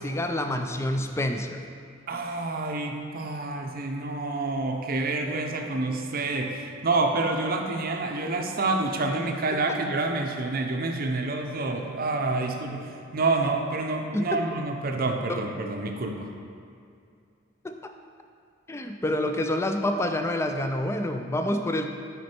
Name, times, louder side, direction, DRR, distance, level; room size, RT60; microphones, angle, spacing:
voice 1, 0.0-1.6 14.1-14.4 15.3-15.4 17.6-17.9 18.7-21.9, left 1 dB, 15° left, 5 dB, 0.3 m, -27 dB
voice 2, 2.1-16.3, right 3 dB, 45° right, 3 dB, 0.6 m, -28 dB
6.2 x 5.1 x 4.4 m, 2.4 s
head